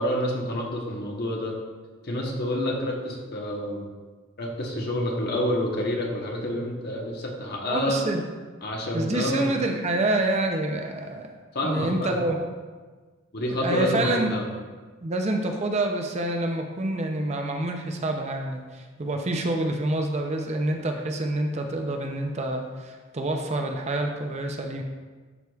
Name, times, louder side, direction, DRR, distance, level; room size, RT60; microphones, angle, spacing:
voice 1, 0.0-1.6 2.0-3.8 4.4-8.0 8.6-9.5 11.5-12.2 13.3-14.5, left 1 dB, 50° left, 0 dB, 1.0 m, -28 dB
voice 2, 7.6-8.2 8.9-11.3 11.6-12.4 13.5-14.3 15.0-24.8, right 2 dB, 30° right, 3 dB, 0.5 m, -27 dB
11.0 x 4.8 x 2.3 m, 1.4 s
head